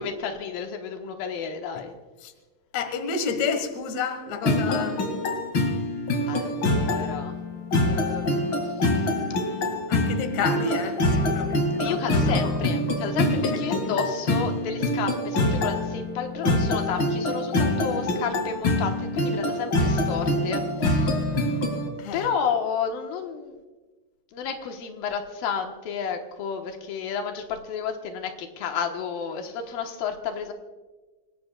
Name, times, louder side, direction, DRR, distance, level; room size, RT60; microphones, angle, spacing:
voice 1, 0.0-1.9 6.3-7.3 7.8-8.9 10.5-10.8 11.8-21.2 22.1-23.6 24.3-30.5, left 6 dB, 85° left, 4 dB, 3.0 m, -31 dB
voice 2, 2.7-5.0 9.9-11.0 11.2-12.0 12.3-12.5 13.5-13.9 22.0-22.3, left 5 dB, 60° left, 8 dB, 2.6 m, -30 dB
sound 1, 4.4-21.9, left 1 dB, 40° left, 2.4 m, -25 dB
26.0 x 19.0 x 2.3 m, 1.3 s
omnidirectional pair, 4.0 m